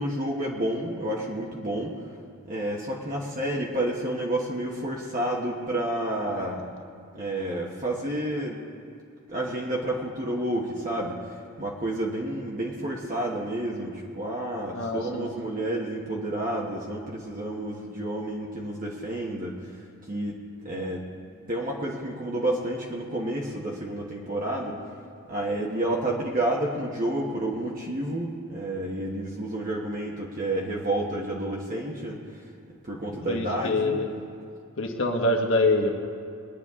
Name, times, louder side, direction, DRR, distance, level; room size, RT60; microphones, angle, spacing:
voice 1, 0.0-2.0 2.4-6.6 7.1-8.6 9.3-19.7 20.1-20.4 20.6-21.0 21.5-24.8 25.3-32.2 32.8-33.9, right 1 dB, 40° right, -3 dB, 1.3 m, -30 dB
voice 2, 14.7-15.3 33.3-34.1 34.8-35.9, left 2 dB, 65° left, 2 dB, 1.5 m, -25 dB
21.5 x 10.0 x 3.7 m, 2.5 s
head